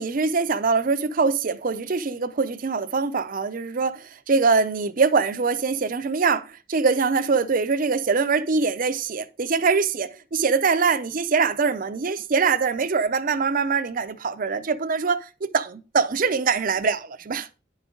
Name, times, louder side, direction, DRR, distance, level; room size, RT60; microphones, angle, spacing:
voice 1, 0.0-17.5, right 4 dB, 45° right, 0.6 m, -23 dB
10.5 x 5.1 x 3.8 m
head